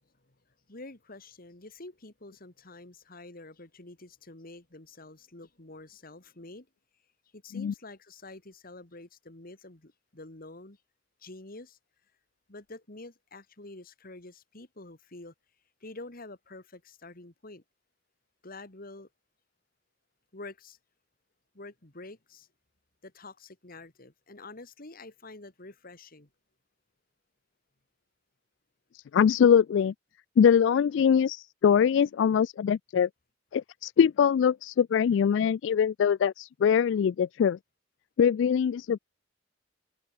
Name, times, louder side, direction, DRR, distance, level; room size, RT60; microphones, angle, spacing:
voice 1, 0.7-6.7 7.3-10.8 11.2-11.8 12.5-15.3 15.8-17.6 18.4-19.1 20.3-20.8 21.5-22.5 23.0-26.3, left 2 dB, 50° left, 2.5 m, -47 dB
voice 2, 28.9-29.9 30.4-33.1 33.5-37.6 38.2-39.0, left 7 dB, 70° left, 0.3 m, -23 dB
head